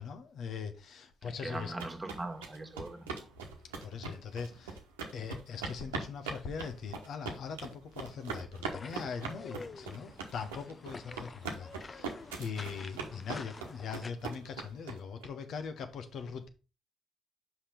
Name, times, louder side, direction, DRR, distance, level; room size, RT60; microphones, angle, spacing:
voice 1, 0.0-1.7 3.8-4.8 5.1-12.1 12.4-16.5, left 6 dB, 60° left, 0.9 m, -41 dB
voice 2, 1.2-3.3, right 2 dB, 25° right, 1.6 m, -41 dB
sound 1, 1.5-15.3, right 4 dB, 85° right, 1.1 m, -41 dB
sound 2, 8.7-14.1, left 4 dB, 35° left, 0.7 m, -48 dB
5.7 x 5.1 x 5.0 m
hypercardioid pair, 40°, 0 cm